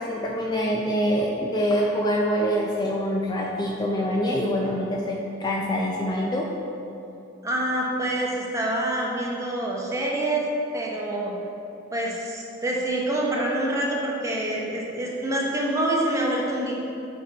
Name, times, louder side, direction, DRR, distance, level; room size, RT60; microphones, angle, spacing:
voice 1, 0.0-6.5, equal, 20° left, -2 dB, 0.4 m, -25 dB
voice 2, 7.4-10.5 10.7-11.3 11.9-16.7, right 1 dB, 15° right, -3 dB, 0.9 m, -26 dB
7.1 x 4.5 x 4.1 m, 2.8 s
head